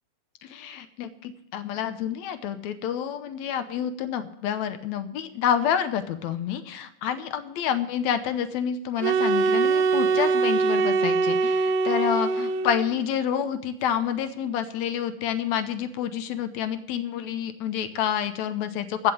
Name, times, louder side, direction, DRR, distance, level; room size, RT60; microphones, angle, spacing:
voice 1, 0.4-19.1, left 9 dB, 80° left, 10 dB, 2.1 m, -28 dB
sound 1, 9.0-12.9, right 4 dB, 80° right, 1.9 m, -23 dB
15.5 x 5.8 x 8.5 m, 0.78 s
omnidirectional pair, 3.3 m